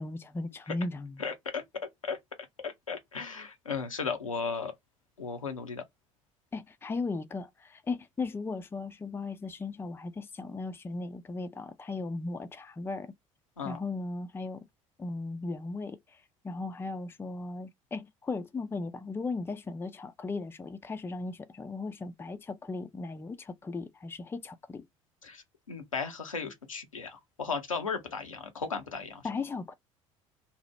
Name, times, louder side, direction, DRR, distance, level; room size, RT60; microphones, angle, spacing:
voice 1, 0.0-1.1 6.5-13.1 13.6-14.7 15.0-24.9 29.2-29.7, left 3 dB, 15° left, 0.4 m, -37 dB
voice 2, 1.2-1.6 2.0-2.2 2.6-4.7 5.2-5.8 13.6-13.8 25.2-29.3, left 5 dB, 85° left, 0.6 m, -35 dB
2.7 x 2.0 x 3.2 m
figure-of-eight pair, 60°, 17 cm